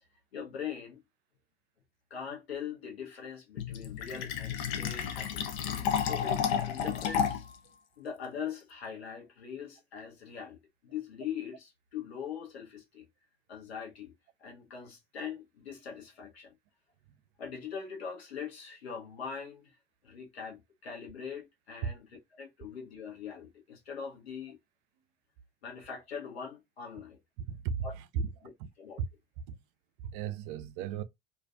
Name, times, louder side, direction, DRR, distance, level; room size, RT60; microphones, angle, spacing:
voice 1, 0.3-1.0 2.1-7.4 8.0-10.6 10.8-13.0 13.5-14.1 14.4-16.5 17.4-19.7 20.0-22.1 22.3-24.6 25.6-27.2 27.8-27.9 28.8-29.0, left 7 dB, 80° left, 0.9 m, -42 dB
Fill (with liquid), 3.6-7.6, left 8 dB, 65° left, 0.6 m, -31 dB
voice 2, 27.5-28.7 29.5-29.6 30.0-31.0, right 7 dB, 60° right, 0.4 m, -36 dB
2.4 x 2.3 x 2.4 m
figure-of-eight pair, 60°, 31 cm